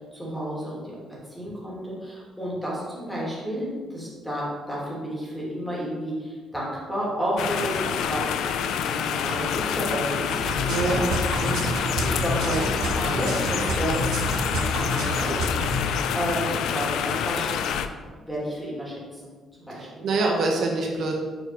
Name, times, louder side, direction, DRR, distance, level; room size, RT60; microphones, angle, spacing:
voice 1, 0.1-1.0 1.3-11.0 11.3-19.3 19.6-20.1, equal, 5° left, -6 dB, 2.5 m, -32 dB
sound 1, 7.4-17.9, left 8 dB, 85° left, 0.5 m, -27 dB
sound 2, 10.3-15.9, equal, 80° right, 1.4 m, -28 dB
voice 2, 10.7-11.6 19.7-21.1, right 3 dB, 60° right, 0 dB, 1.2 m, -26 dB
7.8 x 4.6 x 5.9 m, 1.5 s
cardioid pair, 150°, 0 cm